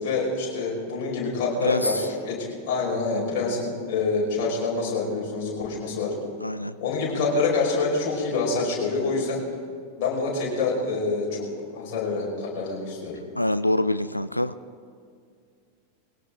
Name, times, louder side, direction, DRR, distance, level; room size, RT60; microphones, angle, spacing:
voice 1, 0.0-6.1 6.8-9.4 10.0-11.4 11.7-13.2, left 3 dB, 45° left, -4 dB, 5.5 m, -26 dB
voice 2, 1.6-2.1 6.4-6.7 13.4-14.5, left 1 dB, 85° left, 14 dB, 0.4 m, -25 dB
21.0 x 17.5 x 3.9 m, 2.2 s
figure-of-eight pair, 90°, 0 cm